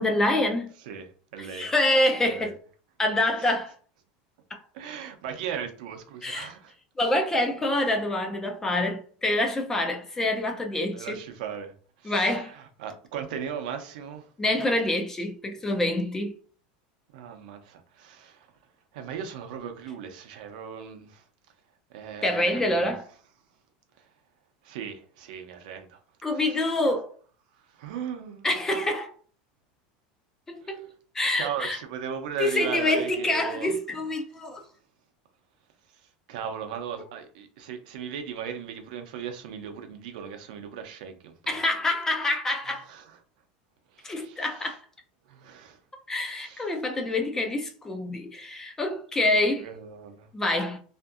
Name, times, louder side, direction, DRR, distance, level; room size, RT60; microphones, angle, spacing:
voice 1, 0.0-0.7 1.4-2.6 3.0-3.7 6.2-6.5 7.0-11.2 12.1-12.5 14.4-16.3 22.2-23.1 26.2-27.1 28.4-29.1 30.5-30.8 31.1-31.8 32.4-34.6 41.5-42.8 44.0-44.8 46.1-49.6 50.3-50.8, left 1 dB, 10° left, 0.3 m, -26 dB
voice 2, 0.8-1.7 2.2-2.5 3.4-3.5 4.7-6.7 10.9-14.3 17.1-18.5 18.9-21.2 21.9-22.9 24.0-24.1 24.6-26.0 26.3-26.8 27.6-28.5 30.6-30.9 31.3-33.7 36.3-41.6 42.8-43.2 43.9-44.7 45.3-45.8 46.2-46.7 49.6-50.3, right 8 dB, 75° right, 0.6 m, -38 dB
2.6 x 2.5 x 2.4 m
supercardioid pair, 160°, 4 cm